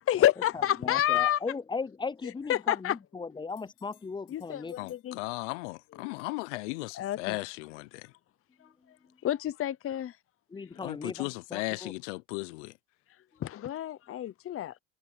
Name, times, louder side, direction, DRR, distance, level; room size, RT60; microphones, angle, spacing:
voice 1, 0.1-1.4 2.5-3.0 4.3-5.2 6.9-7.4 9.2-10.1 13.4-14.7, left 12 dB, 40° left, 0.8 m, -28 dB
voice 2, 0.8-4.8 10.5-11.9, left 4 dB, 15° left, 0.4 m, -37 dB
sound 1, 3.5-5.1 8.8-8.9, left 17 dB, 65° left, 7.9 m, -65 dB
voice 3, 4.8-8.1 10.8-12.7, left 24 dB, 85° left, 0.8 m, -36 dB
supercardioid pair, 80°, 35 cm